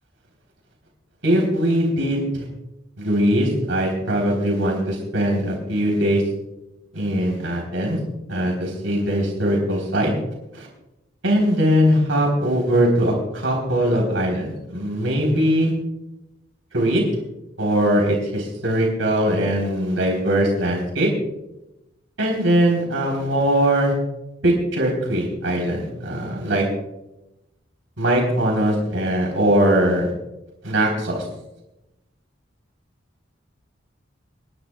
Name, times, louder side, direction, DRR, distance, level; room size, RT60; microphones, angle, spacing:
voice 1, 1.2-2.5 3.0-6.2 6.9-8.0 8.3-10.1 10.5-10.7 11.2-15.7 16.7-17.0 17.6-21.1 22.2-23.9 24.4-26.7 28.0-30.1 30.6-31.2, equal, 85° right, -1 dB, 3.7 m, -21 dB
28.5 x 10.5 x 2.3 m, 0.91 s
head